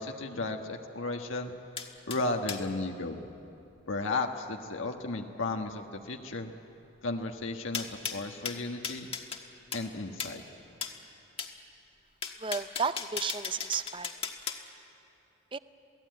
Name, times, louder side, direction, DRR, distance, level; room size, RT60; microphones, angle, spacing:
voice 1, 0.0-1.5 2.1-3.2 3.9-6.5 7.0-9.1 9.7-10.4, left 2 dB, 85° left, 3 dB, 1.5 m, -34 dB
sound 1, 1.8-2.6 7.7-9.4 9.7-9.9 10.2-10.4 10.8-11.0 11.4-11.5 12.2-14.6, left 6 dB, 30° left, 1.4 m, -37 dB
voice 2, 12.4-14.1 15.5-15.6, right 5 dB, 25° right, 13 dB, 0.5 m, -33 dB
27.5 x 17.5 x 9.3 m, 3.0 s
head